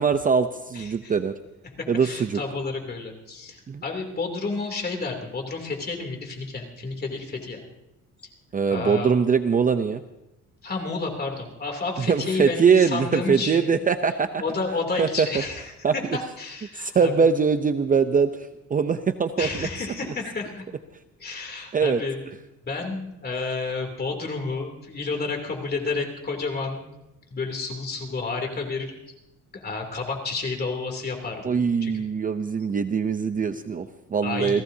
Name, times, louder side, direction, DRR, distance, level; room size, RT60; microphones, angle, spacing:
voice 1, 0.0-1.3 1.9-2.4 3.7-3.8 8.5-10.0 12.0-14.4 15.0-15.3 15.8-15.9 16.7-19.7 21.7-22.0 31.4-34.6, right 6 dB, 25° right, 9 dB, 0.6 m, -22 dB
voice 2, 0.7-1.1 1.8-7.6 8.7-9.1 10.6-13.8 14.4-17.1 19.4-20.5 21.2-22.2 22.6-26.9 27.3-28.9 29.6-32.0 34.2-34.6, left 3 dB, 30° left, 3 dB, 3.0 m, -31 dB
29.0 x 17.0 x 2.8 m, 0.91 s
cardioid pair, 130°, 32 cm